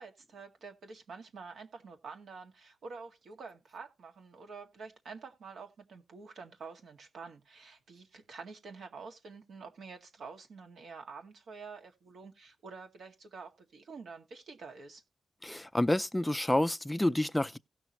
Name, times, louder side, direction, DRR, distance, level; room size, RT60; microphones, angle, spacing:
voice 1, 0.0-15.0, right 4 dB, 80° right, 2.0 m, -48 dB
voice 2, 15.4-17.6, left 1 dB, 5° left, 0.4 m, -29 dB
17.0 x 6.1 x 2.9 m
wide cardioid pair, 130°, 0 cm